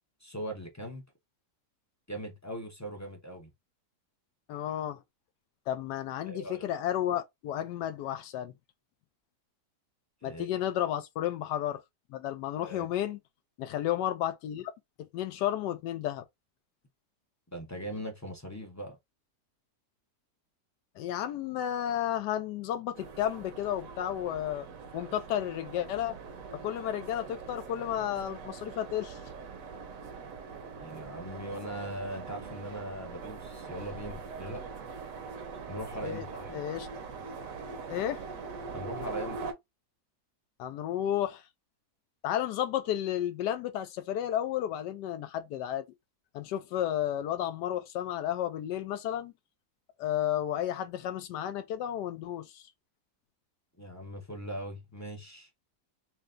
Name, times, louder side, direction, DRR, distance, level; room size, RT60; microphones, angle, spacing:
voice 1, 0.2-1.0 2.1-3.5 6.2-6.7 10.2-10.5 12.6-12.9 17.5-19.0 30.8-34.6 35.7-36.5 38.7-39.5 53.8-55.5, right 1 dB, 25° left, 0.3 m, -40 dB
voice 2, 4.5-5.0 5.7-8.5 10.2-11.8 12.1-13.2 13.6-14.7 15.0-16.2 21.0-24.7 24.9-26.2 26.5-29.2 36.0-36.3 36.5-36.9 37.9-38.2 40.6-41.4 42.2-45.8 46.3-49.3 50.0-52.6, left 11 dB, 85° left, 1.2 m, -32 dB
sound 1, 22.9-39.5, right 5 dB, 65° right, 1.0 m, -42 dB
5.7 x 2.2 x 2.5 m
omnidirectional pair, 1.8 m